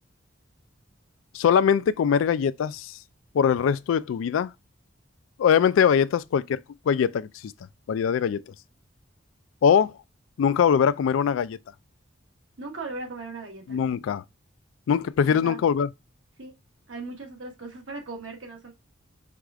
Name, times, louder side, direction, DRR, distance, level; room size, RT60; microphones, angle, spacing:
voice 1, 1.3-2.9 3.3-4.5 5.4-6.6 6.9-7.5 7.9-8.4 9.6-9.9 10.4-11.6 13.7-14.2 14.9-15.9, left 7 dB, 85° left, 0.3 m, -22 dB
voice 2, 12.6-13.8 15.2-15.6 16.4-16.5 16.9-18.7, right 3 dB, 80° right, 1.3 m, -38 dB
4.7 x 2.4 x 3.6 m
head